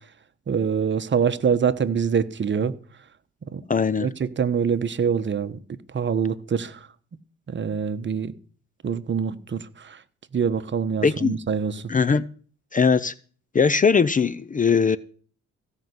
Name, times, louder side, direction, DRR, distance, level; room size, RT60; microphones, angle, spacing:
voice 1, 0.5-2.7 3.5-3.6 4.0-5.6 5.9-6.8 7.5-8.3 8.8-10.0 10.3-11.8, right 6 dB, 40° right, 1.1 m, -25 dB
voice 2, 3.7-4.1 11.0-11.4 11.9-12.2 12.7-13.1 13.5-15.0, left 5 dB, 25° left, 0.6 m, -20 dB
16.0 x 5.7 x 7.9 m
cardioid pair, 90°, 30 cm